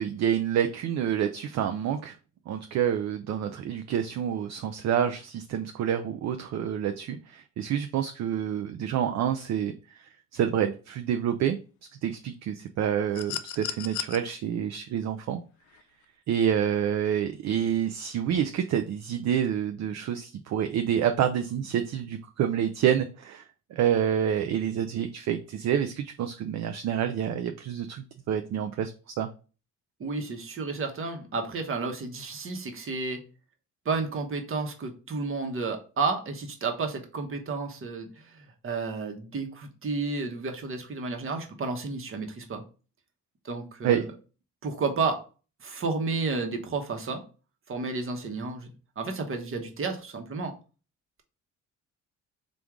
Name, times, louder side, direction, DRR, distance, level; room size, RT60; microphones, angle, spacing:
voice 1, 0.0-2.1 2.5-9.7 10.3-11.6 12.0-15.4 16.3-23.4 23.7-29.3 43.8-44.1, right 9 dB, 60° right, 7 dB, 0.5 m, -28 dB
sound 1, 13.1-14.2 15.7-15.8, left 11 dB, 75° left, 0.5 m, -34 dB
voice 2, 30.0-33.2 33.8-42.6 43.4-44.1 44.6-45.2 45.6-47.2 47.7-48.7 49.0-50.5, right 4 dB, 45° right, 4 dB, 1.0 m, -31 dB
3.6 x 2.5 x 4.6 m, 0.36 s
cardioid pair, 90°, 30 cm